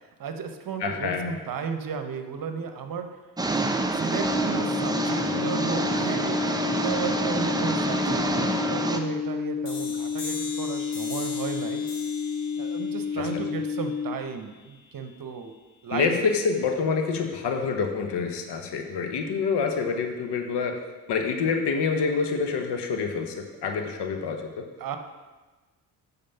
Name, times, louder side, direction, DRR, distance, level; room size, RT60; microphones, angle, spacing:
voice 1, 0.2-3.1 3.9-11.8 12.6-15.5 15.8-16.1 24.8-25.0, right 6 dB, 45° right, 7 dB, 1.0 m, -34 dB
voice 2, 0.8-1.4 13.2-13.4 15.9-20.8 21.1-24.7, left 5 dB, 60° left, 5 dB, 1.2 m, -27 dB
sound 1, 3.4-9.0, right 2 dB, 10° right, 0.7 m, -27 dB
sound 2, 4.1-14.1, left 6 dB, 15° left, 1.1 m, -30 dB
sound 3, 9.6-15.1, left 4 dB, 85° left, 1.7 m, -41 dB
8.7 x 4.2 x 5.5 m, 1.2 s
hypercardioid pair, 50°, 47 cm